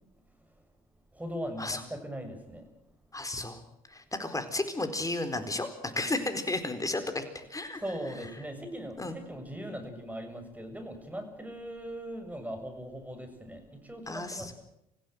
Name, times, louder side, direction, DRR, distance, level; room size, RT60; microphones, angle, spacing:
voice 1, 1.1-2.7 7.8-14.5, equal, 10° right, 6 dB, 6.9 m, -40 dB
voice 2, 3.1-3.6 3.9-7.8 9.0-9.1 14.1-14.5, left 2 dB, 15° left, 9 dB, 4.3 m, -33 dB
26.5 x 16.0 x 7.9 m, 0.83 s
hypercardioid pair, 60°, 19 cm